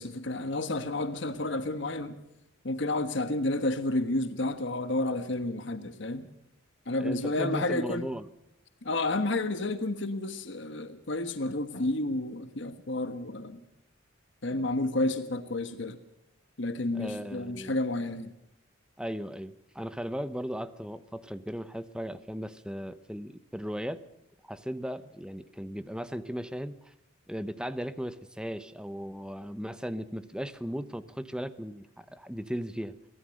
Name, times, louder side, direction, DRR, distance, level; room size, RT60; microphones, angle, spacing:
voice 1, 0.0-2.2 2.6-6.3 6.9-8.1 8.8-13.6 14.4-16.0 16.6-18.3, left 2 dB, 60° left, 9 dB, 1.3 m, -31 dB
voice 2, 7.0-8.3 16.9-17.8 19.0-24.0 24.4-26.9 27.3-33.0, equal, 5° right, 13 dB, 0.9 m, -37 dB
23.5 x 17.0 x 6.5 m, 0.84 s
head